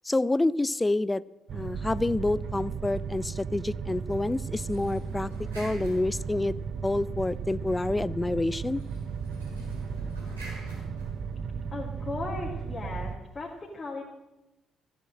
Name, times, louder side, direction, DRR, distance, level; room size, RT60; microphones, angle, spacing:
voice 1, 0.0-1.2 1.5-5.3 5.6-6.5 6.8-8.8, left 2 dB, 20° left, 21 dB, 0.4 m, -28 dB
sound 1, 1.5-13.2, right 6 dB, 55° right, 0.6 m, -35 dB
sound 2, 4.4-6.9 8.5-11.7, right 1 dB, 90° right, 4.3 m, -45 dB
voice 2, 11.7-14.0, left 3 dB, 35° left, -3 dB, 2.4 m, -37 dB
14.0 x 8.0 x 7.6 m, 1.0 s
figure-of-eight pair, 45°, 0 cm